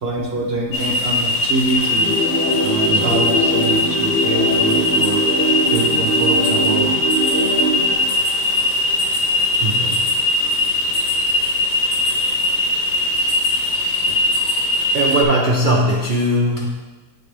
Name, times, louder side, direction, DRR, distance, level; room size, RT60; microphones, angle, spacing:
voice 1, 0.0-2.1 2.6-5.3 5.6-6.9, right 2 dB, 50° right, -1 dB, 0.8 m, -25 dB
sound 1, 0.7-15.2, left 2 dB, 60° left, 1.1 m, -20 dB
sound 2, 1.7-12.4, left 3 dB, 85° left, 1.3 m, -37 dB
sound 3, 1.9-7.9, right 1 dB, 40° left, 0.9 m, -22 dB
voice 2, 2.9-3.2 9.6-10.1 14.1-14.2 14.9-16.7, right 1 dB, 75° right, -2 dB, 0.4 m, -19 dB
8.2 x 4.2 x 3.3 m, 1.2 s
omnidirectional pair, 1.8 m